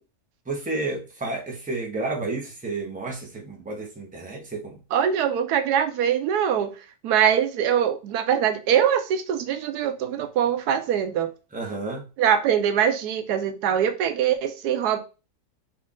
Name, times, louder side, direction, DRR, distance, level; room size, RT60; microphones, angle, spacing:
voice 1, 0.5-4.8 11.5-12.1, right 3 dB, 5° right, 0.8 m, -31 dB
voice 2, 4.9-6.7 7.0-11.3 12.2-15.0, right 9 dB, 90° right, 1.2 m, -23 dB
4.3 x 2.5 x 3.6 m
omnidirectional pair, 1.6 m